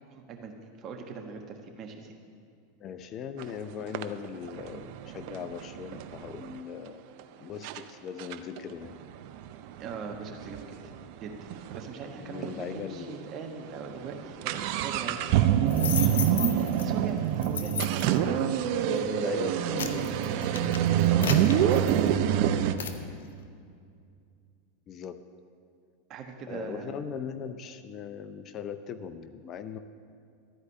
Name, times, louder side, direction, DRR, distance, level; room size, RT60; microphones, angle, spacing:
voice 1, 0.1-2.1 9.8-10.8 11.2-11.3 11.7-15.3 15.6-16.3 16.8-19.3 21.1-22.5 26.1-27.0, right 5 dB, 40° right, 3 dB, 1.4 m, -41 dB
voice 2, 2.8-7.0 7.4-8.9 12.1-13.2 18.9-21.9 24.9-25.2 26.5-29.8, left 7 dB, 40° left, 11 dB, 0.5 m, -39 dB
sound 1, 3.4-3.5 3.9-6.6 7.2-7.3 7.6-7.8 8.2-11.9 12.1-12.2 12.4-12.5 13.1-13.3 13.6-22.7, right 10 dB, 55° right, 0.5 m, -26 dB
sound 2, 15.7-16.9 17.4-18.2 18.8-19.0 19.5-22.3 22.8-23.0, left 7 dB, 75° left, 0.7 m, -34 dB
13.0 x 4.9 x 8.4 m, 2.3 s
hypercardioid pair, 90°, 0 cm